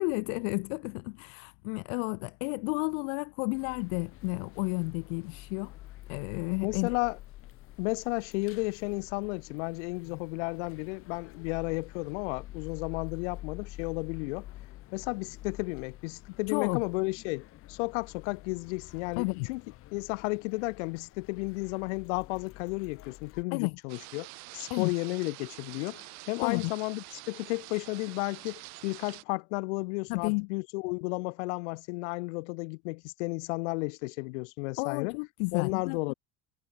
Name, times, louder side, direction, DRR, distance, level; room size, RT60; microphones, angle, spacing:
voice 1, 0.0-5.7 6.1-6.9 16.5-16.8 19.2-19.5 23.5-23.7 24.7-24.9 26.4-26.7 30.1-30.5 34.8-36.1, left 39 dB, 65° left, 0.9 m, -31 dB
sound 1, 3.5-23.4, left 15 dB, 40° left, 6.4 m, -48 dB
voice 2, 6.6-7.2 7.8-14.5 14.9-19.6 19.9-24.3 24.5-35.2 35.5-36.1, left 28 dB, 80° left, 1.2 m, -33 dB
sound 2, 23.9-29.2, right 24 dB, 50° right, 4.5 m, -47 dB
cardioid pair, 180°, 35 cm